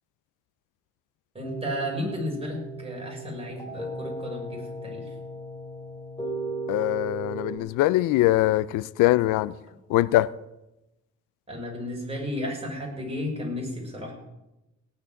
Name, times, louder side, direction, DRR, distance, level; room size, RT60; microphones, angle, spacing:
voice 1, 1.3-5.1 11.5-14.1, left 1 dB, 20° right, 6.4 m, -33 dB
sound 1, 1.4-7.6, right 2 dB, 15° left, 3.3 m, -36 dB
voice 2, 6.7-9.5 9.9-10.3, left 16 dB, 90° left, 0.5 m, -22 dB
18.0 x 6.0 x 9.1 m
cardioid pair, 90°, 30 cm